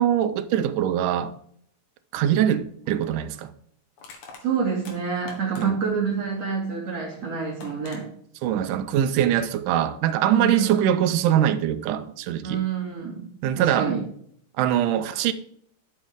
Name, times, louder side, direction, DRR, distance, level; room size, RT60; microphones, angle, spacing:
voice 1, 0.0-1.3 2.1-3.5 5.6-5.8 8.4-12.6 13.4-13.9 14.6-15.3, right 10 dB, 80° right, 2.2 m, -23 dB
Crushing, 2.7-2.8 4.0-5.9 7.1-7.2 7.6-8.0, left 4 dB, 65° left, 2.9 m, -45 dB
voice 2, 4.4-8.1 10.3-11.1 12.4-13.2 13.5-14.0, right 6 dB, 55° right, 3.2 m, -27 dB
12.0 x 6.5 x 3.6 m
omnidirectional pair, 3.8 m